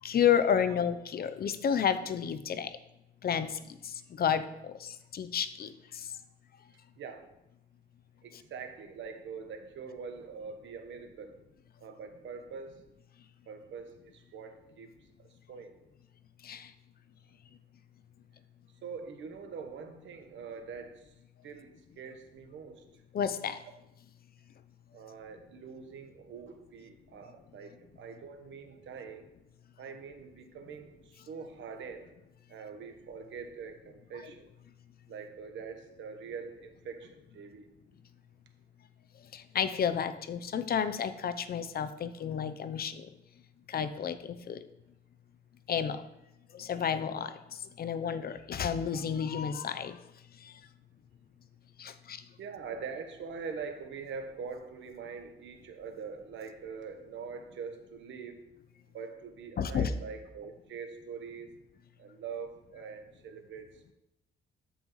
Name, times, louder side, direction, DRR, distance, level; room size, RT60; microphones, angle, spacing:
voice 1, 0.0-2.8 3.2-6.1 8.3-8.4 16.4-16.7 23.1-23.6 39.3-43.1 43.7-44.6 45.7-46.0 46.5-50.0 50.4-50.6 51.8-52.2 59.6-59.9, left 8 dB, 50° left, 12 dB, 0.6 m, -31 dB
voice 2, 7.0-7.3 8.2-11.4 11.8-12.8 13.5-14.9 15.2-15.7 18.8-21.1 21.4-23.0 24.9-29.3 29.8-32.1 32.5-34.5 35.1-37.7 52.4-58.4 58.9-61.5 62.0-63.9, right 5 dB, 70° right, 6 dB, 1.1 m, -44 dB
13.0 x 5.5 x 3.1 m, 0.87 s
cardioid pair, 90°, 20 cm